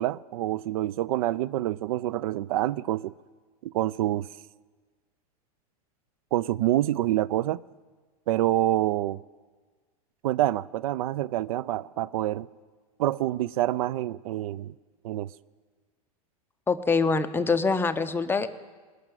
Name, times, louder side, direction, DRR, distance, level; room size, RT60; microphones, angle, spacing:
voice 1, 0.0-3.1 3.6-4.3 6.3-7.6 8.3-9.2 10.2-12.5 13.0-14.7 15.0-15.3, right 14 dB, 65° right, 0.4 m, -27 dB
voice 2, 16.7-18.5, left 4 dB, 10° left, 0.7 m, -24 dB
18.5 x 6.6 x 9.1 m
hypercardioid pair, 115°, 19 cm